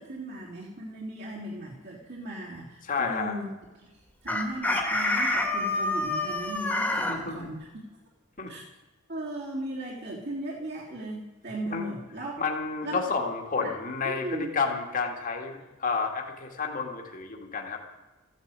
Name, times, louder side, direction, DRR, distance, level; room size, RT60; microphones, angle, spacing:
voice 1, 0.0-3.5 3.8-3.9 4.2-7.7 8.5-8.6 9.1-12.3 12.8-13.2 13.6-13.7 14.0-14.5, right 1 dB, 50° right, -4 dB, 3.3 m, -37 dB
voice 2, 2.8-3.3 7.1-7.4 8.4-8.5 11.7-11.9 12.4-17.8, left 4 dB, 35° left, 2 dB, 2.0 m, -30 dB
Chicken rooster, 4.3-7.2, left 2 dB, 5° left, 2.0 m, -27 dB
15.0 x 11.0 x 8.2 m, 1.2 s
head